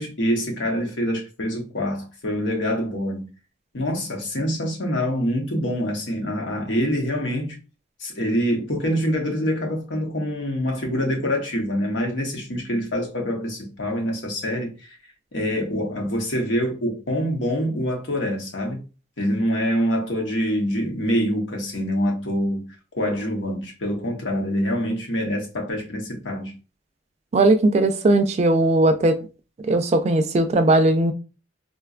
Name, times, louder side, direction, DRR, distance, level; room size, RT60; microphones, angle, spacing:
voice 1, 0.0-3.3 3.7-7.6 8.0-15.0 15.3-18.8 19.2-26.5, equal, 80° left, 0.9 m, -25 dB
voice 2, 27.3-29.2 29.6-31.1, right 2 dB, 35° right, 0.3 m, -18 dB
3.9 x 2.2 x 2.4 m
head